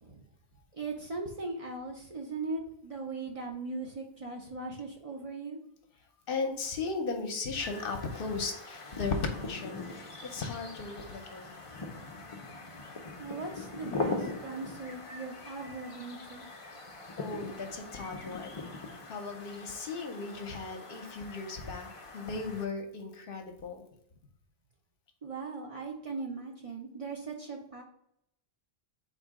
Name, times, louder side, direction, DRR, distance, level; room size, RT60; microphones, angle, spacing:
voice 1, 0.7-5.6 13.2-16.5 25.2-27.8, right 3 dB, 40° right, 0 dB, 0.6 m, -39 dB
voice 2, 6.3-11.5 17.2-23.8, left 4 dB, 65° left, 4 dB, 0.9 m, -36 dB
sound 1, 7.6-22.6, left 3 dB, 40° left, 0.6 m, -42 dB
4.0 x 2.7 x 4.8 m, 0.74 s
omnidirectional pair, 1.0 m